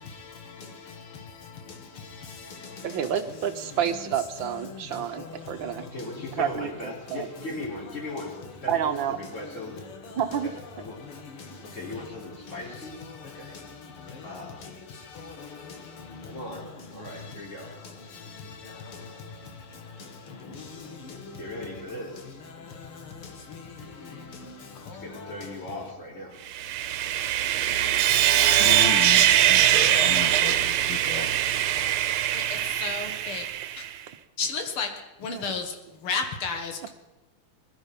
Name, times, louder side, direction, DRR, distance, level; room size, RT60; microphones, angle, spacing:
voice 1, 0.0-3.1 4.4-5.9 6.2-6.3 8.2-8.3 9.4-10.2 10.7-12.1 12.4-25.6 29.1-29.3 29.7-30.0 30.3-30.9 31.5-31.9 32.3-33.4 33.8-33.9 34.4-34.9 35.2-35.7 36.0-36.9, left 4 dB, 90° left, 2.6 m, -39 dB
voice 2, 2.8-5.8 6.3-7.3 8.7-9.2 10.2-10.5 35.3-35.4, right 9 dB, 70° right, 1.5 m, -29 dB
voice 3, 5.8-9.8 10.4-11.0 11.6-13.6 14.2-14.8 15.1-15.3 16.2-17.7 21.4-22.4 24.9-26.4, left 2 dB, 35° left, 4.0 m, -39 dB
Sawing, 26.5-33.9, right 12 dB, 85° right, 1.7 m, -22 dB
voice 4, 28.6-31.3, left 6 dB, 75° left, 2.4 m, -34 dB
21.0 x 12.0 x 5.2 m
omnidirectional pair, 2.3 m